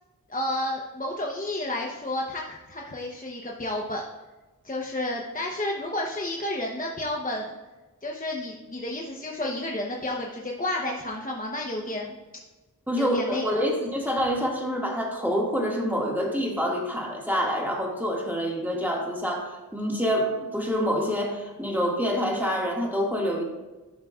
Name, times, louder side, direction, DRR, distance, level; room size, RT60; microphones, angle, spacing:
voice 1, 0.3-4.1 4.6-7.5 8.0-12.2 13.0-13.6, left 1 dB, 25° left, -1 dB, 0.8 m, -31 dB
voice 2, 12.9-23.4, equal, 5° right, -2 dB, 1.8 m, -27 dB
12.0 x 5.6 x 2.4 m, 1.2 s
wide cardioid pair, 50°, 36 cm